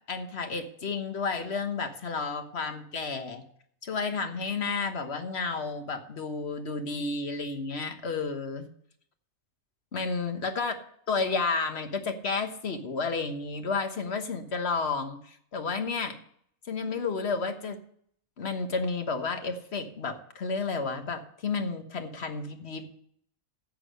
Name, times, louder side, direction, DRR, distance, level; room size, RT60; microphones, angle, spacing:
voice 1, 0.1-3.4 3.8-8.7 9.9-10.7 11.1-16.2 16.7-17.8 18.4-22.9, left 4 dB, 50° left, 7 dB, 1.4 m, -31 dB
10.0 x 8.2 x 6.4 m, 0.65 s
omnidirectional pair, 1.5 m